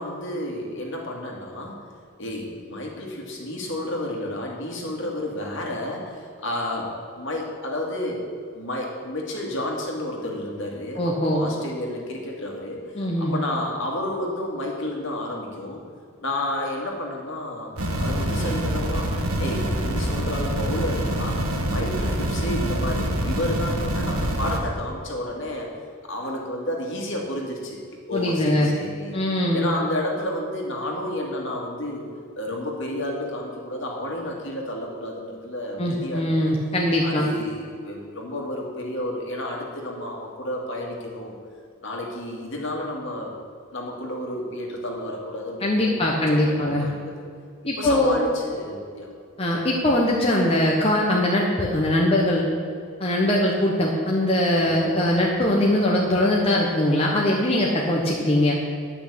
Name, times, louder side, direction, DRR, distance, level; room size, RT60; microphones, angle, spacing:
voice 1, 0.0-1.9 2.2-8.2 8.5-12.8 13.2-15.8 16.2-17.7 18.0-19.1 19.4-25.7 26.0-29.1 29.5-32.0 32.4-36.5 37.0-41.4 41.8-43.3 43.7-47.1 47.8-49.1 54.6-54.8, left 1 dB, 60° left, -1 dB, 2.2 m, -31 dB
voice 2, 11.0-11.4 12.9-13.3 28.1-28.7 29.1-29.6 35.8-37.3 45.6-46.9 47.7-48.2 49.4-52.5 53.0-58.6, left 1 dB, 25° left, -3 dB, 1.1 m, -21 dB
sound 1, 17.8-24.6, right 1 dB, 80° right, 1.5 m, -25 dB
11.0 x 6.0 x 8.3 m, 2.3 s
head